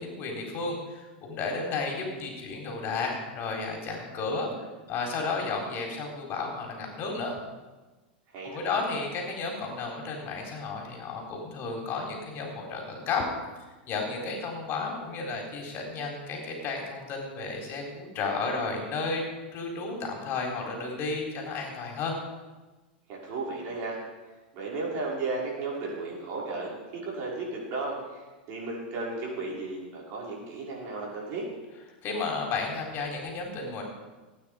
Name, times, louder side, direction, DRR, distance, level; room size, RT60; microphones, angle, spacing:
voice 1, 0.0-4.5 4.9-7.4 8.4-13.2 13.9-19.2 19.5-22.1 32.0-33.8, left 4 dB, 40° left, 1 dB, 4.0 m, -33 dB
voice 2, 8.3-8.8 23.1-24.0 24.5-31.5, right 3 dB, 50° right, -3 dB, 5.0 m, -34 dB
17.5 x 9.3 x 5.0 m, 1.2 s
hypercardioid pair, 110°, 6 cm